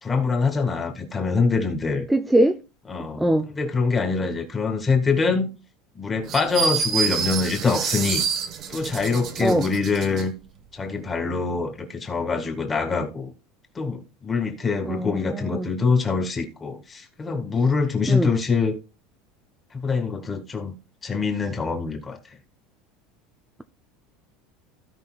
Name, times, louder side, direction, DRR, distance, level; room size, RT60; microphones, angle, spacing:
voice 1, 0.0-2.1 2.9-5.5 5.9-8.2 8.7-10.3 10.7-13.3 13.7-18.8 19.7-20.8 21.0-22.4, left 4 dB, 15° left, 1.9 m, -24 dB
voice 2, 2.1-2.6 3.2-3.5 9.4-9.7 14.8-15.7 18.1-18.3, right 1 dB, 5° right, 0.4 m, -21 dB
sound 1, 6.3-10.3, right 6 dB, 35° right, 1.1 m, -27 dB
16.5 x 5.5 x 2.3 m
supercardioid pair, 155°, 0 cm